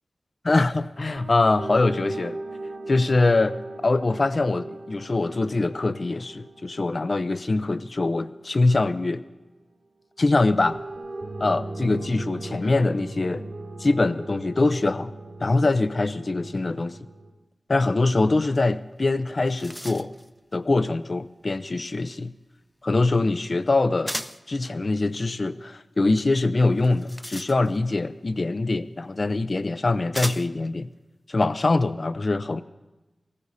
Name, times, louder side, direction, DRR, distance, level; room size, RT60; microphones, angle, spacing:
voice 1, 0.4-2.4 2.9-9.2 10.2-10.8 11.4-13.4 13.8-15.1 15.4-17.0 17.7-20.1 20.5-22.3 22.8-24.1 24.5-30.9 31.3-32.6, left 2 dB, 50° left, 14 dB, 0.6 m, -23 dB
sound 1, 1.2-9.3 10.6-17.3, right 2 dB, 80° right, 2.8 m, -39 dB
sound 2, 18.9-19.0 19.3-20.3 24.1-24.5 26.8-27.9 29.0-29.1 30.1-30.7, equal, 5° left, 0.4 m, -35 dB
18.0 x 15.0 x 4.1 m, 1.1 s
wide cardioid pair, 65°, 0 cm